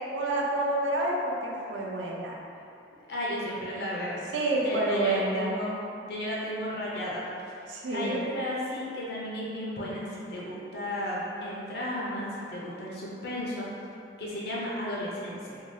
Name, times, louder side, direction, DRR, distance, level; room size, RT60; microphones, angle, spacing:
voice 1, 0.1-2.4 4.3-5.6 7.7-8.3, right 1 dB, 85° right, -2 dB, 0.5 m, -28 dB
voice 2, 3.1-4.2 4.6-5.8 6.0-7.3 7.9-13.7 14.2-15.6, left 1 dB, 60° left, -6 dB, 0.6 m, -34 dB
2.7 x 2.3 x 3.1 m, 2.6 s
head